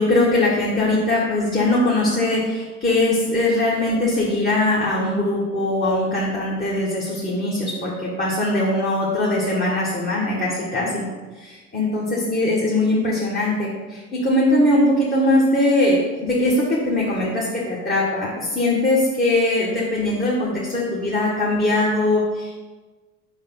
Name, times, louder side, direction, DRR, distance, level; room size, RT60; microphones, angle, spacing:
voice 1, 0.0-11.0 11.3-22.6, left 1 dB, 25° left, -5 dB, 1.5 m, -21 dB
4.9 x 4.0 x 5.5 m, 1.3 s
hypercardioid pair, 60°, 36 cm